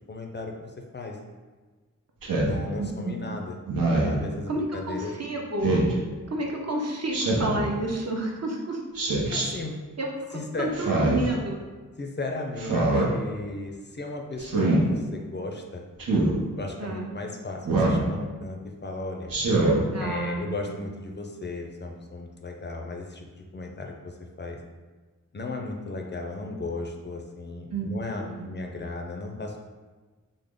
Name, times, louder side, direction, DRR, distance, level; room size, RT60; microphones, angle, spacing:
voice 1, 0.1-1.2 2.4-3.6 4.0-5.1 9.3-9.8 10.3-10.9 12.0-15.8 16.6-19.3 20.0-24.6 25.3-29.6, left 2 dB, 35° left, 2 dB, 0.4 m, -35 dB
Speech synthesizer, 2.2-2.6 3.7-4.2 5.6-5.9 7.1-7.6 8.9-9.4 10.7-11.3 12.6-13.1 14.4-14.8 16.0-16.3 17.6-18.0 19.3-19.8, right 2 dB, 90° right, 0.7 m, -23 dB
voice 2, 2.8-3.3 4.5-5.7 6.3-8.8 10.0-11.6 16.8-17.1 19.9-20.7 27.7-28.5, right 2 dB, 50° right, -1 dB, 0.6 m, -31 dB
3.5 x 2.0 x 3.5 m, 1.3 s
wide cardioid pair, 85°, 33 cm